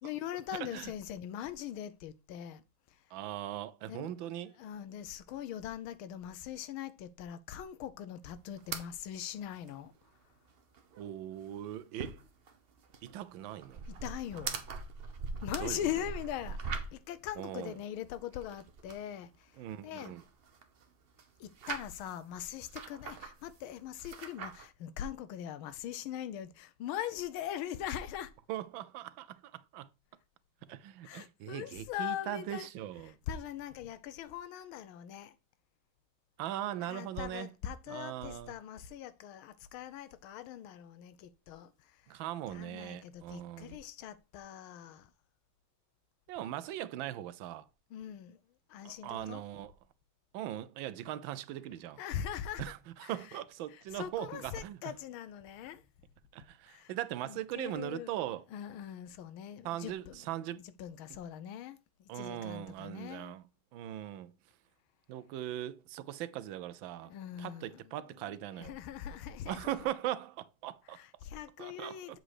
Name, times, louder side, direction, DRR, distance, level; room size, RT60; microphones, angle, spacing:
voice 1, 0.0-2.6 3.9-4.1 4.6-9.9 13.9-14.6 15.4-19.5 19.8-20.2 21.4-28.3 31.0-32.7 33.3-35.3 36.8-42.0 42.5-45.1 47.9-48.4 48.7-49.4 52.0-52.7 53.0-53.4 53.7-55.8 56.7-56.9 57.2-58.1 58.5-60.2 60.8-63.3 67.0-69.8 70.9-72.2, left 10 dB, 90° left, 1.5 m, -41 dB
voice 2, 0.6-0.9 3.1-4.5 11.0-12.2 13.0-13.8 15.6-15.8 17.4-17.8 19.6-20.2 28.5-29.9 30.7-33.2 36.4-37.5 37.9-38.5 42.1-43.8 46.3-47.7 48.8-49.7 50.3-52.0 52.6-54.9 56.3-58.4 59.6-60.6 62.1-63.4 63.7-64.3 65.1-67.1 67.4-68.7 69.5-71.0 71.6-72.2, right 12 dB, 75° right, 1.3 m, -40 dB
sound 1, 8.6-8.9 9.2-9.3 9.5-9.7 10.1-10.2 10.5-11.1 11.4-17.1 17.6-19.0 19.5-20.9 21.2-22.2 22.6-23.6 24.0-24.7, right 5 dB, 60° right, 0.6 m, -42 dB
7.5 x 4.0 x 4.8 m
omnidirectional pair, 2.2 m